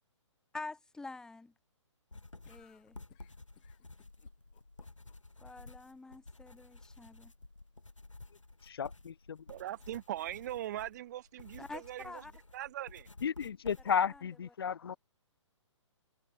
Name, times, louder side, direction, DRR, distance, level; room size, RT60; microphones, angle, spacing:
voice 1, 0.5-1.5 2.5-3.0 5.4-7.3 11.6-12.3 13.8-14.5, left 3 dB, 5° left, 3.4 m, -47 dB
sound 1, 2.1-14.2, left 2 dB, 75° left, 7.5 m, -53 dB
sound 2, 2.4-5.4, left 34 dB, 25° left, 3.6 m, -66 dB
voice 2, 8.6-9.4 13.2-14.9, left 7 dB, 50° left, 0.8 m, -33 dB
voice 3, 9.5-12.0 12.5-13.1, right 13 dB, 35° right, 1.9 m, -40 dB
figure-of-eight pair, 130°, 16 cm